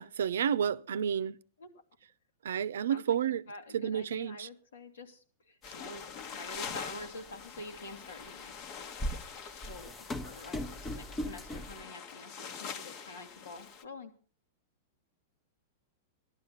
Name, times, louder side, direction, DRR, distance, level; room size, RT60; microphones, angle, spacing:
voice 1, 0.0-1.4 2.4-3.4 3.7-4.5, right 8 dB, 85° right, 0.6 m, -31 dB
voice 2, 3.5-8.5 9.4-10.0 10.2-14.1, left 2 dB, 90° left, 2.5 m, -47 dB
sound 1, 5.6-13.8, left 6 dB, 45° left, 1.2 m, -45 dB
sound 2, 5.7-5.8 6.2-6.7 7.4-7.5 8.5-11.8, equal, 15° left, 0.9 m, -39 dB
15.0 x 12.0 x 5.7 m
hypercardioid pair, 120°, 0 cm